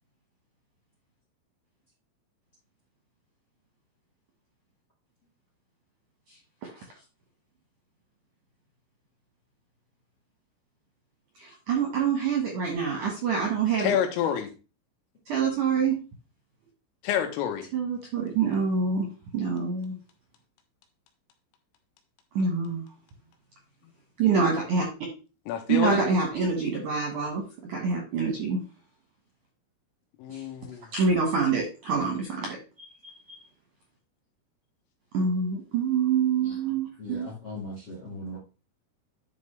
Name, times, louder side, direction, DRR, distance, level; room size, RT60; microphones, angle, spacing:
voice 1, 11.4-14.0 15.3-15.9 17.7-19.1 19.3-20.0 22.3-22.8 24.2-24.8 25.7-27.4 27.7-28.6 30.3-30.4 30.9-33.4 35.1-37.3, right 5 dB, 65° right, 0 dB, 2.1 m, -26 dB
voice 2, 13.8-14.5 17.0-17.7 25.5-26.0 30.2-30.9, left 9 dB, 90° left, 6 dB, 3.8 m, -28 dB
voice 3, 37.0-38.4, left 1 dB, 60° left, -2 dB, 1.1 m, -38 dB
10.5 x 5.3 x 3.3 m, 0.33 s
omnidirectional pair, 5.7 m